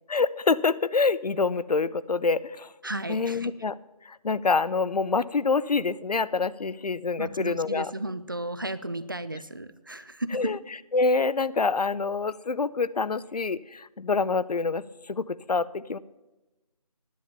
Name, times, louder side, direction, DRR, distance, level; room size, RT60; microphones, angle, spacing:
voice 1, 0.1-2.7 3.1-3.8 4.1-7.9 10.3-10.6 10.9-16.0, left 4 dB, 85° left, 17 dB, 0.6 m, -26 dB
voice 2, 2.8-3.5 7.2-10.5, right 1 dB, 35° right, 14 dB, 0.4 m, -34 dB
10.5 x 8.9 x 6.9 m, 1.1 s
figure-of-eight pair, 170°, 20 cm